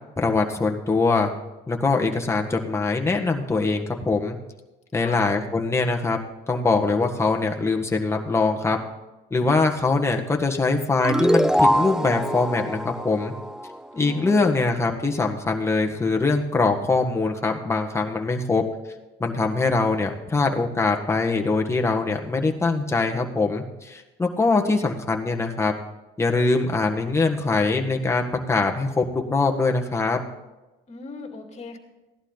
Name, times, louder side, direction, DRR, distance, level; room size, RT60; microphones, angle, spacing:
voice 1, 0.2-1.3 1.7-4.4 4.9-6.2 6.5-8.8 9.3-13.3 14.0-18.6 19.2-25.7 26.2-30.2, left 3 dB, 15° left, 2 dB, 1.5 m, -23 dB
voice 2, 4.9-5.2 13.9-14.6 30.9-31.8, left 3 dB, 30° left, 4 dB, 2.2 m, -38 dB
sound 1, 11.0-14.3, equal, 5° right, 0.4 m, -23 dB
16.0 x 11.5 x 3.9 m, 1.1 s
cardioid pair, 110°, 21 cm